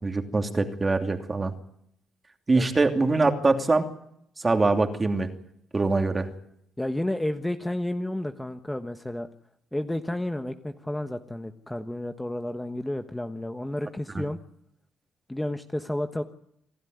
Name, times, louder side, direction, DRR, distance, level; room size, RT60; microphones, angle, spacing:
voice 1, 0.0-1.5 2.5-3.9 4.4-5.3 5.7-6.3 14.1-14.2, right 3 dB, 25° right, 5 dB, 2.8 m, -23 dB
voice 2, 6.8-9.3 9.7-14.4 15.3-16.2, left 1 dB, 10° left, 7 dB, 1.3 m, -31 dB
26.5 x 12.5 x 9.5 m, 0.73 s
cardioid pair, 90°, 0 cm